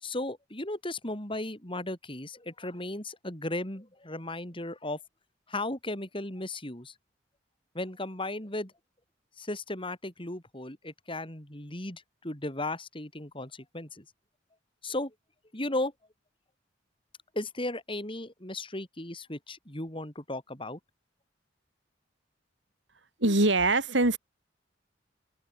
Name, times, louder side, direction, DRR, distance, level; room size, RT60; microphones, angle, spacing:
voice 1, 0.0-5.0 5.5-6.9 7.7-8.7 9.4-14.1 14.8-15.1 15.5-15.9 17.3-20.8, left 2 dB, 30° left, 5.3 m, -36 dB
voice 2, 23.2-24.2, right 2 dB, 85° right, 4.3 m, -23 dB
open air
head